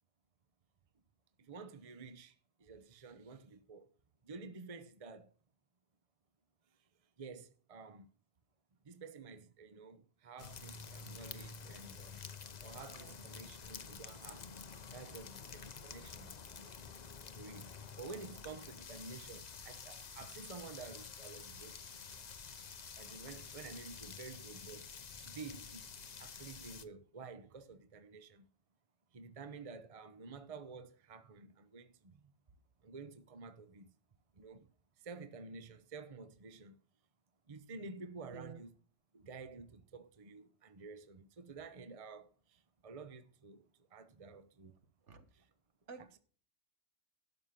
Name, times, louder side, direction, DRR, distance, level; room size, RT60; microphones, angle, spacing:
voice 1, 1.4-3.9 4.2-5.3 7.2-8.1 8.8-12.2 12.6-14.5 14.9-16.7 17.3-21.8 22.9-24.9 25.2-25.9 26.2-28.5 29.1-32.3 32.8-33.9 34.4-34.7 35.0-36.7 37.5-38.7 39.1-44.7, right 4 dB, 30° right, 0.9 m, -51 dB
sound 1, 10.4-26.9, left 5 dB, 40° left, 0.8 m, -50 dB
voice 2, 38.3-38.6 45.0-45.3 45.9-46.2, right 5 dB, 65° right, 1.7 m, -52 dB
12.5 x 5.8 x 6.7 m
omnidirectional pair, 1.3 m